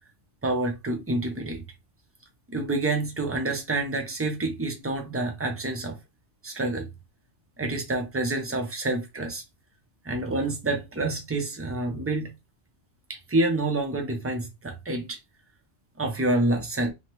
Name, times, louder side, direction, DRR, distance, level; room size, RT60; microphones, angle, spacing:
voice 1, 0.4-1.6 2.5-6.0 6.4-6.9 7.6-9.4 10.0-12.3 13.1-15.2 16.0-16.9, right 2 dB, 20° right, 0.4 m, -28 dB
2.8 x 2.1 x 3.0 m
omnidirectional pair, 1.2 m